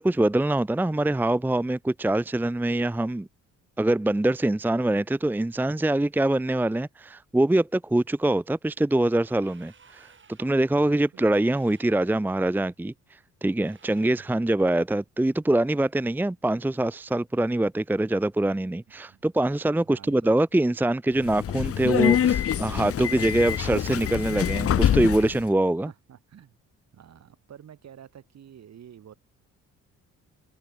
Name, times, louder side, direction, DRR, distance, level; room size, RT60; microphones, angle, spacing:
voice 1, 0.0-3.3 3.8-10.1 10.4-12.9 13.4-25.9, right 1 dB, 5° right, 0.7 m, -24 dB
sound 1, 9.2-10.6 11.2-12.3 13.6-14.5, right 6 dB, 40° right, 7.8 m, -57 dB
voice 2, 10.7-11.2 14.1-14.3 19.0-19.2 19.7-20.4 25.8-26.6 26.9-29.1, right 9 dB, 60° right, 7.1 m, -49 dB
Subway metro underground, 21.2-25.4, left 9 dB, 50° left, 1.0 m, -25 dB
cardioid pair, 90°, 30 cm